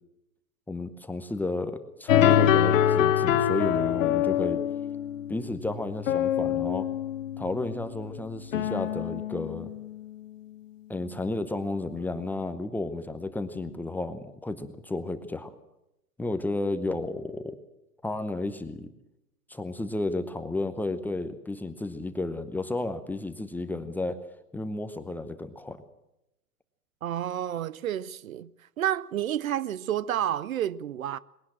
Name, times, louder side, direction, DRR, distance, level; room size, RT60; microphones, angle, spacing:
voice 1, 0.7-4.6 5.3-6.9 7.4-9.7 10.9-15.5 16.2-17.6 18.0-18.9 19.5-24.2 24.5-25.8, left 2 dB, 5° left, 0.8 m, -32 dB
sound 1, 2.1-10.3, left 10 dB, 55° left, 1.3 m, -25 dB
voice 2, 27.0-28.5 28.8-31.2, right 11 dB, 60° right, 0.7 m, -30 dB
21.5 x 17.0 x 7.4 m
figure-of-eight pair, 110°, 47 cm